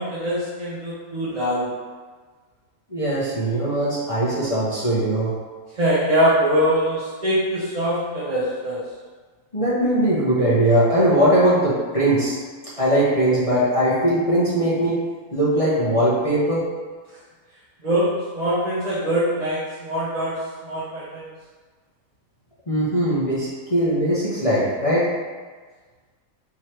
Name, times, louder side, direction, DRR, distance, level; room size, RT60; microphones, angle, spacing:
voice 1, 0.0-1.7 5.8-8.8 17.8-18.1 18.3-20.3 20.6-21.2, equal, 35° right, -10 dB, 0.7 m, -23 dB
voice 2, 2.9-5.3 9.5-12.4 12.8-15.0 15.3-16.6 22.7-25.1, right 1 dB, 30° left, -9 dB, 0.6 m, -20 dB
3.6 x 3.1 x 4.4 m, 1.4 s
omnidirectional pair, 1.8 m